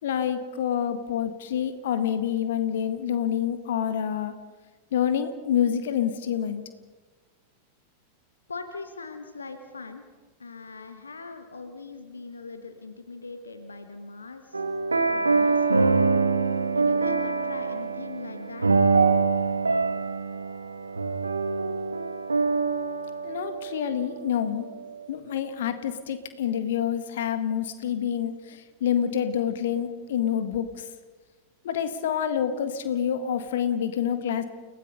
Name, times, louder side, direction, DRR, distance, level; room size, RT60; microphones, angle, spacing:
voice 1, 0.0-4.3 4.9-6.6 23.2-24.6 25.1-30.7 31.6-34.4, left 9 dB, 60° left, 9 dB, 1.8 m, -27 dB
voice 2, 8.5-10.0 10.4-14.6 15.1-16.1 16.7-19.2, left 4 dB, 75° left, 8 dB, 1.5 m, -41 dB
sound 1, 14.5-24.0, right 4 dB, 80° right, 1.5 m, -24 dB
30.0 x 18.0 x 5.4 m, 1.4 s
figure-of-eight pair, 90°, 0 cm